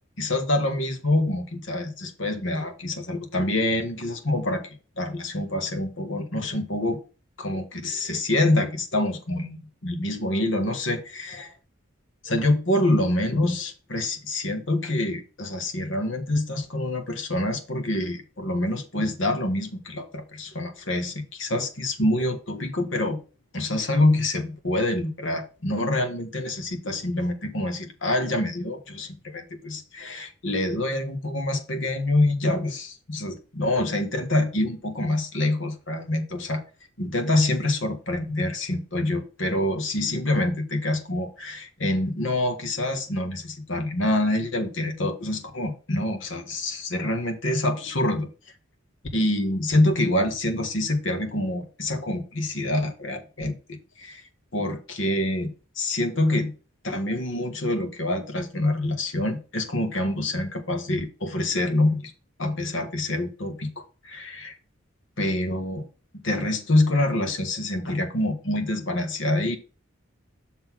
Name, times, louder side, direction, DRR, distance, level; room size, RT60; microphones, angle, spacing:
voice 1, 0.2-4.6 5.0-7.0 7.4-11.5 12.2-23.2 23.5-36.6 37.0-48.3 49.1-54.2 54.5-56.5 56.8-62.1 62.4-64.5 65.2-65.8 66.2-69.6, left 1 dB, 65° left, 1.5 m, -26 dB
6.5 x 4.0 x 6.1 m
head